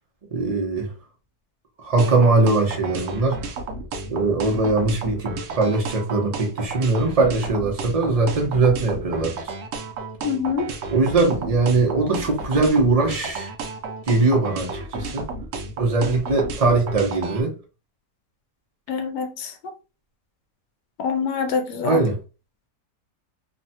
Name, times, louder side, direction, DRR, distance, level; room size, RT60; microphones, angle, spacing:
voice 1, 0.3-0.9 1.8-3.4 4.1-9.5 10.9-13.5 14.1-15.3 15.8-17.5 21.8-22.2, right 3 dB, 55° right, 0.4 m, -21 dB
sound 1, 2.0-17.4, right 3 dB, 70° right, 0.7 m, -32 dB
voice 2, 10.2-10.7 18.9-19.7 21.0-22.0, left 6 dB, 85° left, 1.2 m, -25 dB
3.1 x 2.1 x 2.7 m
omnidirectional pair, 1.8 m